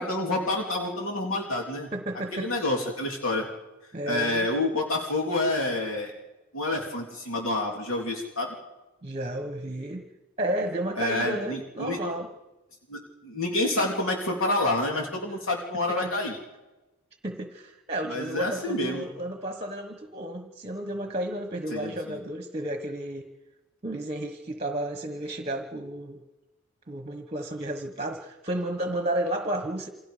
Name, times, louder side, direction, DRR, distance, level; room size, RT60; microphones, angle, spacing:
voice 1, 0.0-1.9 2.3-3.4 4.1-6.1 6.5-8.5 11.0-12.0 12.9-16.4 18.1-19.0 21.7-22.2, left 2 dB, 70° left, 0 dB, 3.4 m, -28 dB
voice 2, 1.9-2.7 3.9-4.5 9.0-10.1 10.4-12.3 16.0-16.1 17.2-23.3 23.8-26.2 26.9-29.9, right 1 dB, 30° right, 6 dB, 1.3 m, -32 dB
28.5 x 26.0 x 5.1 m, 1.1 s
head